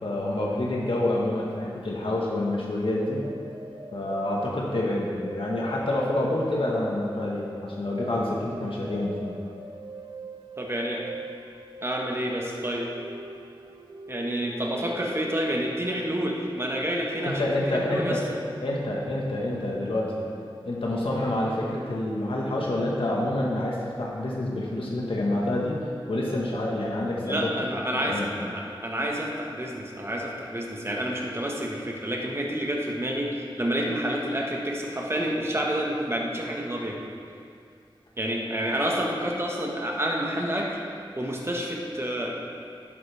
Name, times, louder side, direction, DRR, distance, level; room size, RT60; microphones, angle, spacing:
voice 1, 0.0-3.2 3.9-9.3 17.2-18.2 18.6-20.3 20.6-25.8 26.1-27.5 27.9-28.3, left 1 dB, 85° left, -4 dB, 1.6 m, -27 dB
sound 1, 3.0-20.4, right 3 dB, 75° right, 0.6 m, -43 dB
voice 2, 10.6-11.0 11.8-12.9 14.1-17.4 17.7-18.2 27.2-37.1 38.2-40.8 41.2-42.3, equal, 30° right, -2 dB, 1.6 m, -29 dB
11.0 x 11.0 x 3.6 m, 2.4 s
wide cardioid pair, 75°, 9 cm